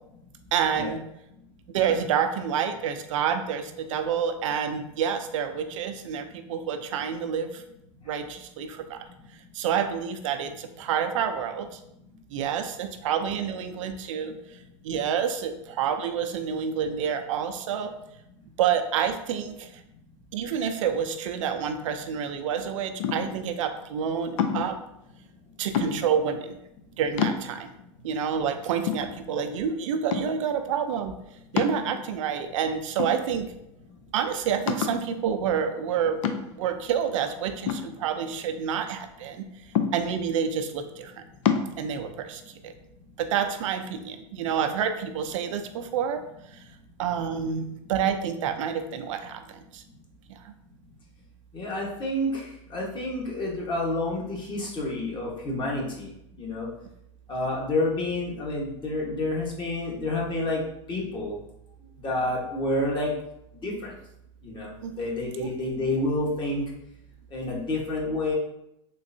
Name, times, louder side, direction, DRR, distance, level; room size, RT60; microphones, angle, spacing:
voice 1, 0.5-1.0 1.7-7.6 8.1-9.0 9.5-11.8 12.3-14.3 14.8-17.9 18.6-19.7 20.3-24.8 25.6-26.6 27.0-27.7 28.0-31.1 31.5-33.5 34.1-36.2 36.6-39.4 39.9-41.1 41.8-42.7 43.2-46.2 46.5-46.6 47.0-49.8 50.4-50.5 64.8-65.0 65.4-65.5, right 7 dB, 80° right, 7 dB, 0.5 m, -28 dB
sound 1, 23.0-23.5 24.4-24.8 25.7-26.3 26.8-26.9 27.2-27.8 28.4-28.5 28.9-29.6 30.1-30.5 31.6-32.3 33.0-33.6 34.0-34.1 34.7-35.1 36.2-36.7 37.7-38.6 39.8-40.3 41.5-41.7, left 7 dB, 75° left, 0.5 m, -28 dB
voice 2, 51.5-56.1 56.4-56.7 57.3-60.6 60.9-61.3 62.0-63.1 63.6-63.9 64.4-66.6 67.3-68.3, left 2 dB, 30° left, -3 dB, 1.1 m, -29 dB
3.8 x 3.2 x 2.6 m, 0.81 s
supercardioid pair, 125°, 16 cm